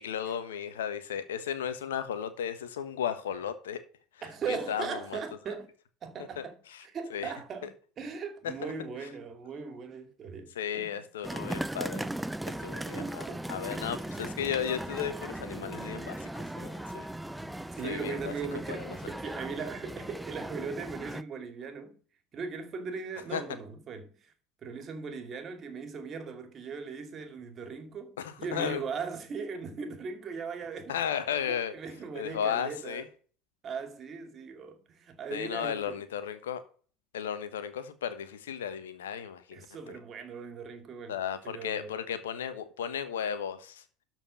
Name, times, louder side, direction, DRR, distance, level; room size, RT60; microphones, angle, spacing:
voice 1, 0.0-3.8 4.1-4.2 4.5-5.2 6.4-7.3 8.6-8.7 10.5-12.1 12.6-17.1 17.8-18.3 18.7-19.0 23.3-23.4 28.2-28.8 30.9-31.7 32.1-33.0 35.3-36.6 37.1-40.0 41.1-43.8, left 8 dB, 75° left, 1.3 m, -35 dB
voice 2, 4.2-5.7 6.0-6.6 6.8-7.7 8.0-11.0 13.0-13.5 17.8-22.0 22.3-24.1 24.6-31.0 31.5-33.0 33.6-36.0 39.5-41.2 41.4-41.9, right 5 dB, 40° right, 2.3 m, -39 dB
sound 1, 11.2-21.2, right 1 dB, 5° right, 0.6 m, -38 dB
12.5 x 4.6 x 5.6 m
figure-of-eight pair, 70°, 0 cm